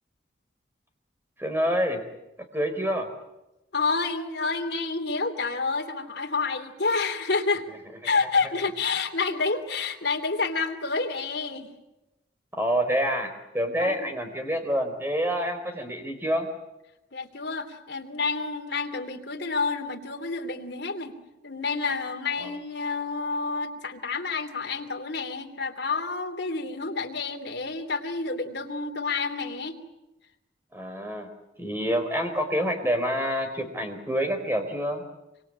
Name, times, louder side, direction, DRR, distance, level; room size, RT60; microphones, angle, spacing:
voice 1, 1.4-2.0 2.5-3.1 12.5-16.5 22.4-22.5 30.7-31.3 31.6-35.0, equal, 10° right, 5 dB, 4.1 m, -27 dB
voice 2, 3.7-7.7 8.0-11.7 13.8-14.1 17.1-21.2 21.4-29.8, left 4 dB, 70° left, 5 dB, 3.0 m, -29 dB
26.0 x 25.0 x 8.7 m, 0.96 s
head